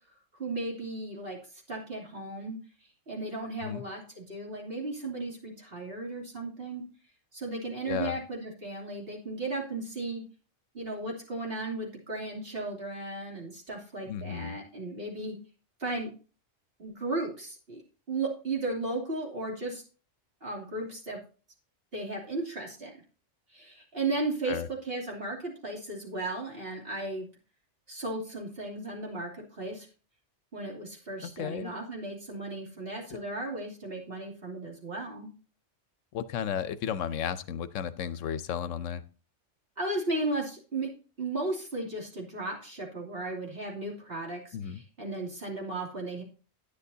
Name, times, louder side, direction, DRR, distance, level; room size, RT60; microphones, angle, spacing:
voice 1, 0.3-1.4 1.7-2.6 3.1-6.8 7.3-10.2 10.7-15.3 15.8-16.1 16.8-17.8 18.1-19.8 20.4-21.2 21.9-23.0 23.5-27.3 27.9-29.9 30.5-35.3 39.8-40.9 41.2-46.2, right 2 dB, 50° right, -2 dB, 3.2 m, -35 dB
voice 2, 7.9-8.2 14.0-14.6 24.5-24.7 31.4-31.7 33.1-33.2 36.1-39.0 44.5-44.8, left 8 dB, 80° left, 14 dB, 1.0 m, -33 dB
11.0 x 10.0 x 2.7 m, 0.38 s
omnidirectional pair, 1.3 m